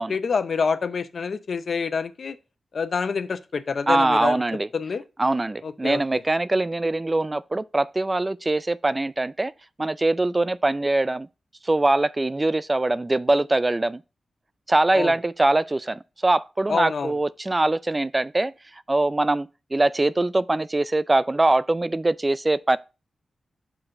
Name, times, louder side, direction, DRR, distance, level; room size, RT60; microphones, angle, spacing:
voice 1, 0.0-2.4 2.7-4.4 4.7-5.0 5.6-6.2 14.9-15.1 16.7-17.1, left 5 dB, 65° left, 0.6 m, -27 dB
voice 2, 3.9-4.7 5.2-9.5 9.8-11.3 11.6-14.0 14.7-18.5 18.9-22.8, right 2 dB, 30° right, 0.4 m, -22 dB
6.1 x 3.8 x 5.4 m
cardioid pair, 50°, 0 cm